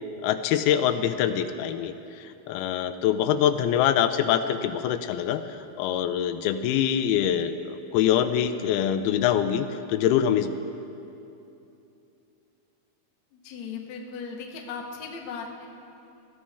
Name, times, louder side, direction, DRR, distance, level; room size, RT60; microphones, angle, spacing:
voice 1, 0.2-1.9 2.5-5.4 5.8-10.5, left 9 dB, 85° left, 10 dB, 2.5 m, -24 dB
voice 2, 13.3-15.7, left 5 dB, 65° left, 1 dB, 1.9 m, -37 dB
20.0 x 14.0 x 3.5 m, 2.8 s
omnidirectional pair, 4.4 m